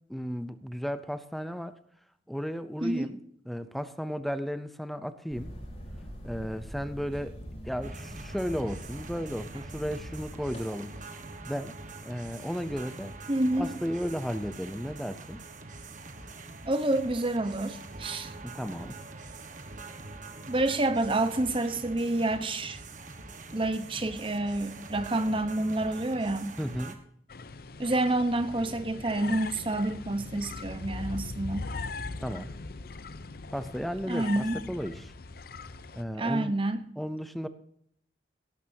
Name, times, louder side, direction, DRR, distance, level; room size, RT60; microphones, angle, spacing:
voice 1, 0.1-1.8 2.3-3.2 3.5-5.5 6.2-7.4 7.6-10.9 11.5-11.7 12.0-13.2 13.6-15.4 18.4-19.0 26.6-27.0 32.2-32.5 33.5-35.1 36.0-36.5 37.0-37.5, equal, ahead, 11 dB, 0.6 m, -34 dB
voice 2, 2.8-3.1 13.3-13.7 16.7-18.3 20.5-22.8 23.5-26.6 27.8-31.7 34.1-34.6 36.2-36.8, right 2 dB, 30° right, 10 dB, 1.0 m, -28 dB
sound 1, 5.3-10.6, equal, 40° left, 5.6 m, -43 dB
sound 2, 7.8-27.0, right 3 dB, 45° right, 1.4 m, -44 dB
sound 3, 27.3-36.0, left 3 dB, 55° left, 0.7 m, -40 dB
17.5 x 12.0 x 2.8 m, 0.67 s
head